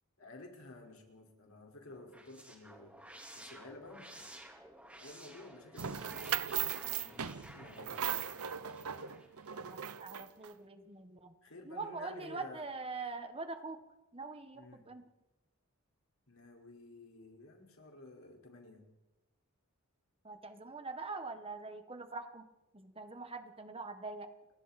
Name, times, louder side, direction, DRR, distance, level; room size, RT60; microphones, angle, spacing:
voice 1, 0.2-3.0 3.3-4.3 4.9-8.0 11.4-12.7 14.5-14.9 16.3-18.9, left 2 dB, 65° left, 1 dB, 4.9 m, -53 dB
sound 1, 1.9-10.0, right 1 dB, 5° right, 3.7 m, -54 dB
sound 2, 5.8-10.5, right 9 dB, 75° right, 0.8 m, -38 dB
voice 2, 9.5-11.3 11.6-13.8 14.1-15.0 20.2-24.3, right 3 dB, 25° right, 7 dB, 1.4 m, -44 dB
29.5 x 24.0 x 4.3 m, 1.0 s
head